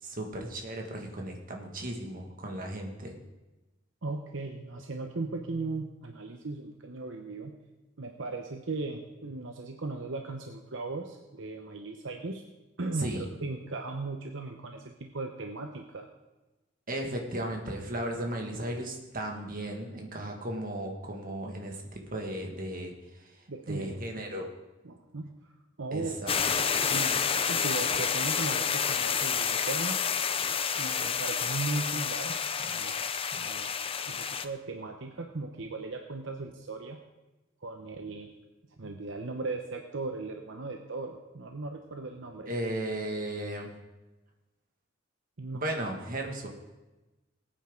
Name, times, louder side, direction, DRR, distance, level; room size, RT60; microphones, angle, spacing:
voice 1, 0.0-3.2 13.0-13.3 16.9-24.5 25.9-26.3 42.5-43.7 45.5-46.5, right 1 dB, 45° right, 1 dB, 2.1 m, -35 dB
voice 2, 4.0-7.5 8.0-12.4 12.8-16.1 23.5-23.9 24.8-25.5 25.8-26.2 26.5-30.0 30.8-33.0 33.3-33.7 34.0-37.0 37.6-38.3 38.8-42.5 45.4-45.6, right 3 dB, 70° right, 4 dB, 0.9 m, -37 dB
sound 1, 26.3-34.4, left 7 dB, 30° left, 0.6 m, -29 dB
20.0 x 9.0 x 3.9 m, 1.1 s
head